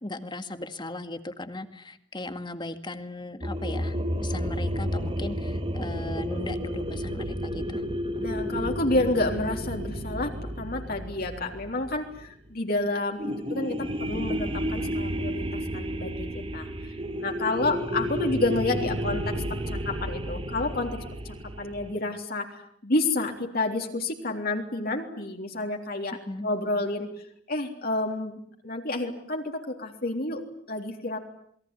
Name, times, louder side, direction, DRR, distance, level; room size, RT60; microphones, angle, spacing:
voice 1, 0.0-7.8 26.3-26.5, left 2 dB, 25° left, 9 dB, 2.0 m, -37 dB
sound 1, 3.4-12.5 13.2-21.9, equal, 30° right, 1.9 m, -31 dB
voice 2, 8.2-15.5 15.7-16.9 17.2-22.5 22.8-27.1 27.5-31.2, left 2 dB, 50° left, 2 dB, 3.6 m, -30 dB
28.0 x 21.5 x 9.7 m, 0.67 s
head